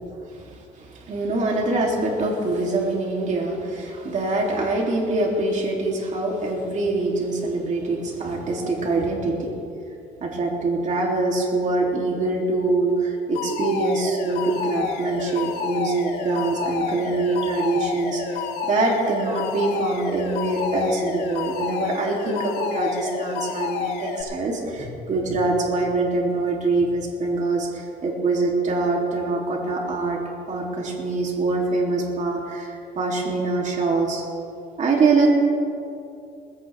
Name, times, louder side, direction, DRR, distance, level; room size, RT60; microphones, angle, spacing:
voice 1, 0.2-9.5 10.2-30.2 30.5-34.2 34.8-35.3, right 3 dB, 45° right, -1 dB, 3.2 m, -24 dB
Alarm, 13.4-24.2, left 6 dB, 85° left, 4.9 m, -29 dB
20.0 x 16.5 x 3.6 m, 2.5 s
cardioid pair, 110°, 17 cm